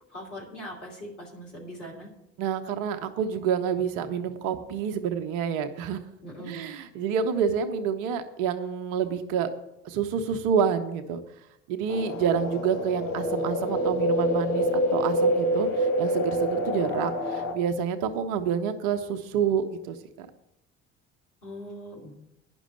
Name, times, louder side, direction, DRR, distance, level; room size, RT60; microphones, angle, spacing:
voice 1, 0.1-2.1 6.2-6.6 21.4-22.1, equal, 85° left, -2 dB, 2.9 m, -41 dB
voice 2, 2.4-6.0 6.4-9.5 9.8-11.2 11.7-20.3, right 7 dB, 60° right, 8 dB, 1.0 m, -28 dB
sound 1, 11.9-17.5, equal, 50° left, 1.9 m, -26 dB
9.9 x 6.2 x 8.8 m, 0.83 s
figure-of-eight pair, 55°, 35 cm